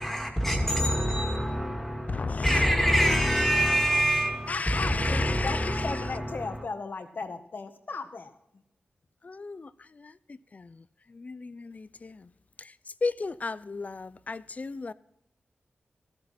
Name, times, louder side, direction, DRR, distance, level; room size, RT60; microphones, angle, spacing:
voice 1, 0.0-6.6, equal, 10° left, 2.3 m, -26 dB
voice 2, 2.1-6.1 9.2-10.2 10.5-12.3 12.6-12.7 13.0-14.9, left 3 dB, 40° left, 0.5 m, -34 dB
voice 3, 4.4-8.3, left 4 dB, 60° left, 1.5 m, -36 dB
13.5 x 13.5 x 4.2 m
wide cardioid pair, 80°, 4 cm